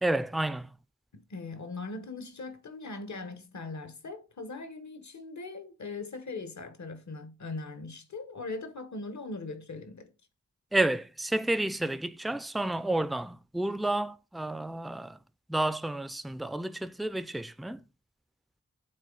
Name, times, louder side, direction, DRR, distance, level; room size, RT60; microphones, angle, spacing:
voice 1, 0.0-0.7 10.7-15.2 15.5-17.8, right 1 dB, ahead, 0.4 m, -30 dB
voice 2, 1.1-10.1, left 3 dB, 75° left, 1.2 m, -40 dB
9.3 x 3.9 x 3.8 m
wide cardioid pair, 70°, 29 cm